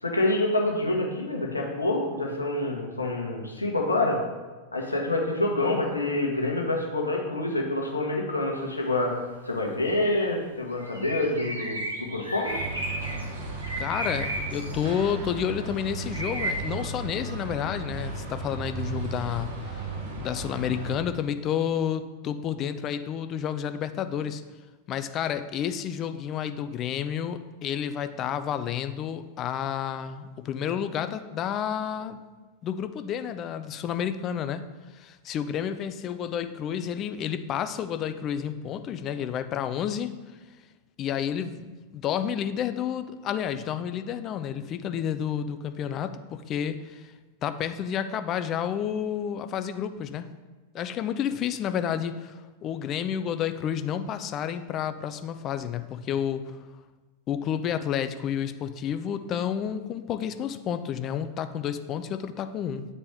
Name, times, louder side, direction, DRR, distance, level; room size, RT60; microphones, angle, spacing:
voice 1, 0.0-4.2 4.7-9.2 9.5-12.5, left 2 dB, 80° left, 0 dB, 1.1 m, -27 dB
sound 1, 10.8-13.2 13.6-14.9 16.1-16.5, right 1 dB, 85° right, 1.1 m, -33 dB
sound 2, 12.4-21.0, right 3 dB, 55° right, 1.0 m, -35 dB
voice 2, 13.8-19.8 20.2-24.4 24.9-32.2 32.6-34.6 34.9-40.2 41.0-47.1 47.4-50.3 50.7-56.6 57.3-62.9, left 9 dB, 35° left, 10 dB, 0.4 m, -30 dB
8.6 x 4.0 x 3.4 m, 1.3 s
figure-of-eight pair, 90°, 0 cm